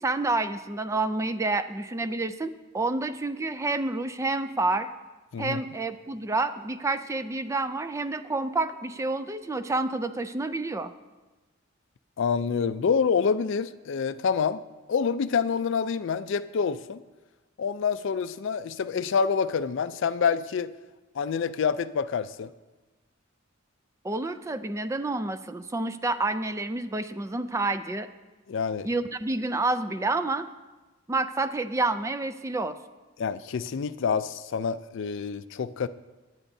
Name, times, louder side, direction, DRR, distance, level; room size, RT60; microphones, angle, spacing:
voice 1, 0.0-4.9 5.4-10.9 24.0-28.1 28.8-30.5 31.1-32.8, right 2 dB, 15° right, 11 dB, 0.3 m, -29 dB
voice 2, 12.2-14.6 14.9-17.0 17.6-20.7 21.1-22.5 28.5-28.9 33.2-35.9, left 6 dB, 65° left, 13 dB, 0.4 m, -27 dB
18.5 x 9.1 x 2.7 m, 1.2 s
head